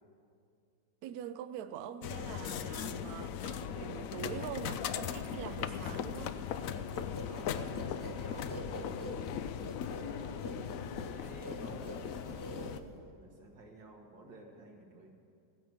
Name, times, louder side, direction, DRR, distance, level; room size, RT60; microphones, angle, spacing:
voice 1, 1.0-6.4, right 9 dB, 70° right, 11 dB, 0.9 m, -44 dB
sound 1, 2.0-12.8, left 8 dB, 80° left, 0.7 m, -39 dB
sound 2, 6.6-13.1, equal, 20° left, 0.6 m, -46 dB
voice 2, 7.3-9.3 9.9-15.1, right 1 dB, 85° right, 0 dB, 2.4 m, -51 dB
15.5 x 9.0 x 6.2 m, 2.4 s
omnidirectional pair, 2.0 m